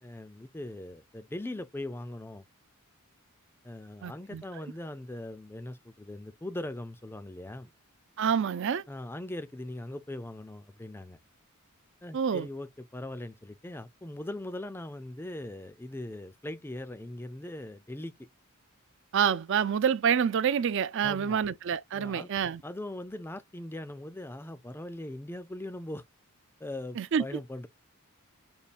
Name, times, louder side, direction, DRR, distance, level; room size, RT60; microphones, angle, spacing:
voice 1, 0.0-2.4 3.6-7.7 8.9-11.2 12.0-18.3 21.0-21.4 21.9-22.3 22.6-26.0 26.6-27.7, left 1 dB, 10° left, 0.4 m, -40 dB
voice 2, 4.0-4.4 8.2-8.8 12.1-12.5 19.1-22.6 27.0-27.4, right 7 dB, 55° right, 0.4 m, -27 dB
5.4 x 2.3 x 2.4 m
head